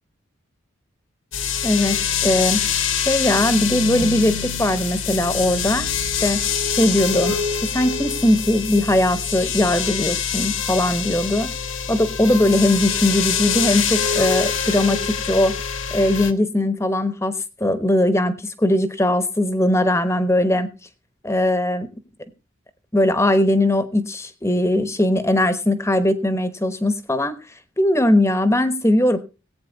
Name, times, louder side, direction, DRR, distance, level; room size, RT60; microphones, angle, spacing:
sound 1, 1.3-16.3, left 7 dB, 70° left, 1.1 m, -25 dB
voice 1, 1.6-2.6 3.1-7.3 7.7-11.5 11.9-15.6 15.9-17.3 17.6-20.7 21.2-21.9 22.9-27.4 27.8-29.2, left 1 dB, 15° left, 11 dB, 1.1 m, -20 dB
18.0 x 8.8 x 4.0 m, 0.32 s
head